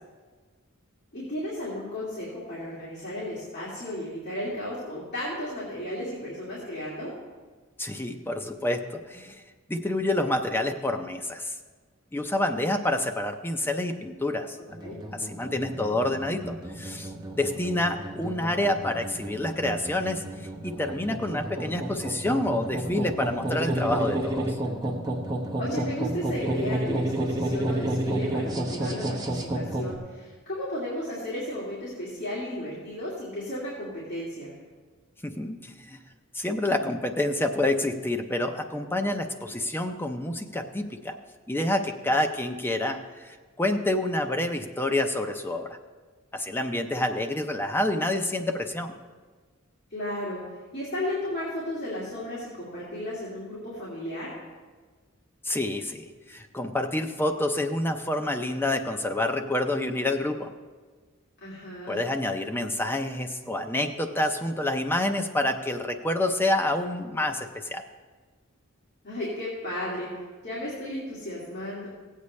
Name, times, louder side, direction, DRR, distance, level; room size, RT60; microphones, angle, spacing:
voice 1, 1.1-7.1 14.8-15.0 25.6-34.5 49.9-50.4 50.7-54.3 61.4-62.0 69.0-70.1 70.4-71.9, left 1 dB, 55° left, -7 dB, 2.4 m, -34 dB
voice 2, 7.8-9.4 9.7-11.5 12.1-14.6 15.1-20.2 20.6-24.6 35.2-36.0 36.3-41.2 41.5-45.8 46.3-48.9 55.4-60.5 61.9-67.8, left 1 dB, 10° left, 5 dB, 0.5 m, -28 dB
sound 1, 14.7-30.0, right 1 dB, 20° right, 1.0 m, -31 dB
16.0 x 8.3 x 3.2 m, 1.4 s
head